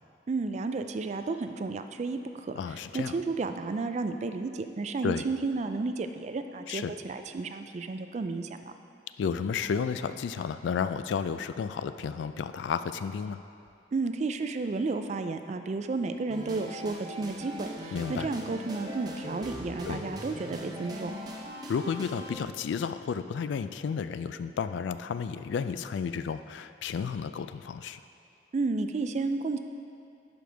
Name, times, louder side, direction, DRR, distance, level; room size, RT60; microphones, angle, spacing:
voice 1, 0.3-2.5 2.9-8.6 13.9-21.1 28.5-29.6, right 3 dB, 40° right, 8 dB, 0.3 m, -32 dB
voice 2, 2.5-3.1 5.0-5.2 6.7-6.9 9.2-13.4 17.9-18.3 19.9-20.0 21.7-28.0, left 6 dB, 85° left, 11 dB, 0.3 m, -32 dB
sound 1, 16.3-22.3, equal, 20° right, 0.7 m, -40 dB
11.5 x 5.1 x 3.4 m, 2.6 s
head